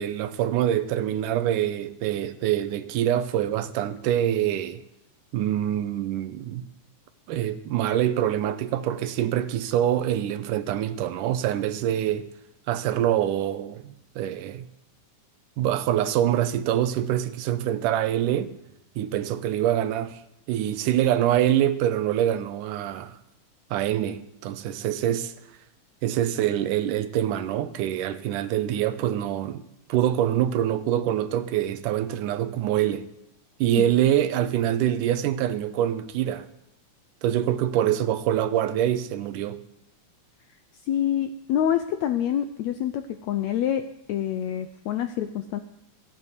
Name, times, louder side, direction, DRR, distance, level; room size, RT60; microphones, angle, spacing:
voice 1, 0.0-4.8 5.3-6.6 7.3-12.3 12.7-14.6 15.6-18.5 19.0-20.2 20.5-23.2 23.7-25.3 26.0-29.6 29.9-33.1 33.6-36.5 37.2-39.6, right 11 dB, 80° right, 2.2 m, -25 dB
voice 2, 40.9-43.8 44.1-45.6, left 10 dB, 80° left, 1.6 m, -26 dB
14.5 x 9.0 x 8.2 m
omnidirectional pair, 3.9 m